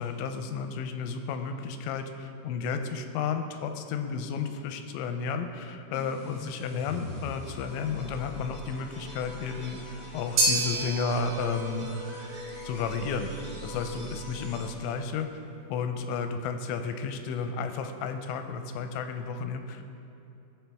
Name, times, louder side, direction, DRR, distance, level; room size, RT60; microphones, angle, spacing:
voice 1, 0.0-11.9 12.6-15.3 15.7-19.9, left 5 dB, 90° left, 7 dB, 2.9 m, -32 dB
sound 1, 5.9-15.1, equal, 20° right, 1.5 m, -43 dB
sound 2, 10.4-18.7, right 2 dB, 85° right, 1.7 m, -34 dB
18.0 x 7.5 x 3.5 m, 2.7 s
omnidirectional pair, 5.2 m